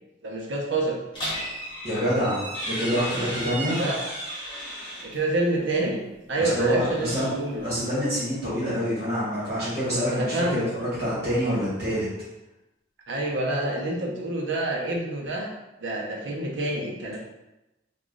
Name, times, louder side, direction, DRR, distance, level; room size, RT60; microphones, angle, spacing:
voice 1, 0.2-1.0 3.8-4.0 5.0-6.0 6.3-7.8 10.1-10.7 13.1-15.5 15.8-17.2, right 2 dB, 65° right, -1 dB, 0.7 m, -27 dB
sound 1, 1.1-5.2 6.5-7.7, equal, 25° left, 0.9 m, -34 dB
voice 2, 1.8-3.8 6.4-7.3 7.6-12.1, equal, 35° right, -10 dB, 1.4 m, -26 dB
3.0 x 2.3 x 3.7 m, 0.95 s
head